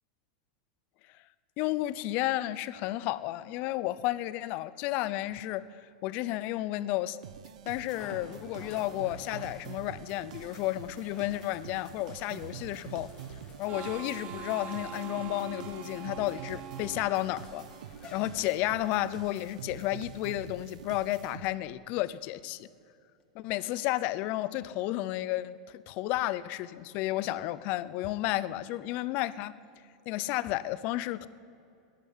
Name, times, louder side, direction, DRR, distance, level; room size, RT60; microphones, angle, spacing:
voice 1, 1.6-5.6 6.0-7.2 7.7-13.1 13.6-17.7 18.1-22.7 23.3-29.5 30.1-31.3, left 16 dB, 45° left, 17 dB, 0.7 m, -32 dB
sound 1, 6.8-6.9 7.9-18.9 19.7-19.8 23.2-23.3, left 3 dB, 25° left, 2.7 m, -53 dB
sound 2, 7.2-21.8, right 9 dB, 85° right, 0.7 m, -46 dB
Harmonica, 13.7-18.1, right 9 dB, 35° right, 0.8 m, -44 dB
13.5 x 10.5 x 9.7 m, 2.5 s
supercardioid pair, 135°, 4 cm